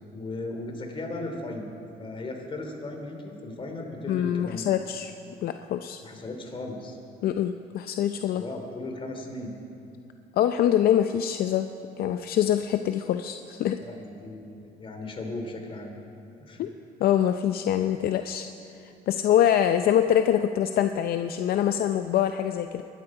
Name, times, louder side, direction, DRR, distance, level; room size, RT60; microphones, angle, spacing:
voice 1, 0.1-1.7 2.0-4.7 6.0-7.0 8.3-9.5 13.8-15.9 16.4-16.7, left 2 dB, 30° left, 3 dB, 2.9 m, -36 dB
voice 2, 4.1-5.1 5.4-6.0 7.2-8.4 10.4-11.7 12.0-13.8 16.6-16.7 17.0-18.5 18.8-22.8, left 10 dB, 65° left, 8 dB, 0.6 m, -24 dB
23.5 x 12.0 x 4.9 m, 2.6 s
cardioid pair, 110°, 17 cm